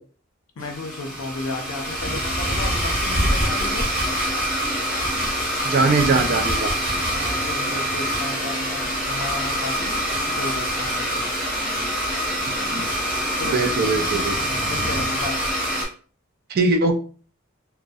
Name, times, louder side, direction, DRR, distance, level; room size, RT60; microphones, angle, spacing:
voice 1, 0.6-3.9 6.9-11.2 13.3-13.6 14.3-15.4, left 2 dB, 75° left, 4 dB, 0.5 m, -34 dB
Domestic sounds home sounds, 0.6-15.9, equal, 10° right, 0.8 m, -25 dB
voice 2, 5.6-6.7 12.5-12.8 13.5-14.4 16.5-17.0, right 3 dB, 45° right, 5 dB, 0.3 m, -21 dB
2.5 x 2.1 x 2.3 m, 0.41 s
head